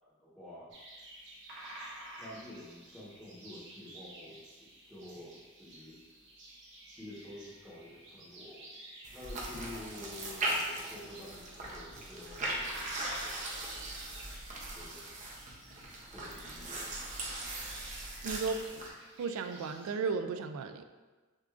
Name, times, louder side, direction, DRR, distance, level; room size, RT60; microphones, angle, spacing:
voice 1, 0.0-0.7 2.2-6.0 7.0-8.7 9.1-13.5 14.7-15.1 16.1-16.9 17.4-17.5, left 1 dB, ahead, -8 dB, 0.9 m, -49 dB
sound 1, 0.7-19.9, right 1 dB, 60° right, 0.9 m, -51 dB
sound 2, 9.0-18.9, right 1 dB, 35° right, 0.6 m, -39 dB
voice 2, 18.2-18.9 19.2-20.8, right 4 dB, 75° right, 9 dB, 0.3 m, -35 dB
6.4 x 2.5 x 2.4 m, 1.3 s
head